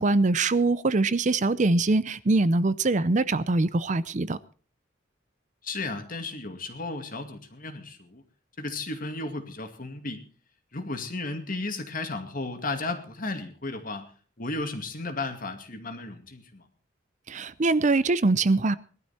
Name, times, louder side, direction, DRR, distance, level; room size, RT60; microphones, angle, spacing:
voice 1, 0.0-4.4 17.3-18.7, right 3 dB, 40° right, 0.6 m, -23 dB
voice 2, 5.6-8.2 8.6-10.2 10.7-14.1 14.4-16.7, left 2 dB, 45° left, 2.3 m, -34 dB
19.0 x 12.5 x 4.3 m
head